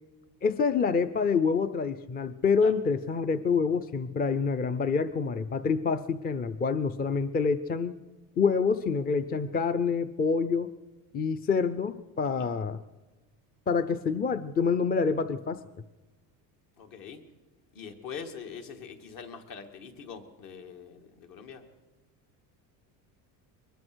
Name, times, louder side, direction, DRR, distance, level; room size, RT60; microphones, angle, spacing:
voice 1, 0.4-8.0 8.4-10.7 11.1-12.8 13.7-15.6, left 5 dB, 25° left, 12 dB, 0.6 m, -27 dB
voice 2, 16.8-17.2 17.7-21.7, left 6 dB, 55° left, 5 dB, 2.6 m, -43 dB
23.0 x 20.5 x 6.3 m, 1.1 s
cardioid pair, 145°, 39 cm